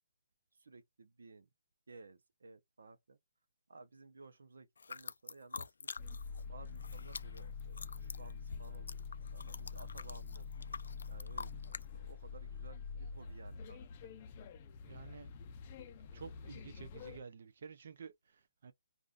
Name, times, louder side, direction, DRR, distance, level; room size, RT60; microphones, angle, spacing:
voice 1, 0.5-1.5 1.9-3.2 3.7-6.1 6.5-9.0 9.3-10.5 11.1-13.8, right 3 dB, 80° right, 0.8 m, -57 dB
sound 1, 4.8-6.4 6.7-11.9, left 4 dB, 85° left, 0.3 m, -47 dB
sound 2, 6.0-17.2, left 5 dB, 25° left, 0.5 m, -46 dB
voice 2, 14.9-15.3 16.1-18.7, right 6 dB, 50° right, 0.5 m, -51 dB
3.6 x 2.5 x 2.4 m
hypercardioid pair, 170°, 0 cm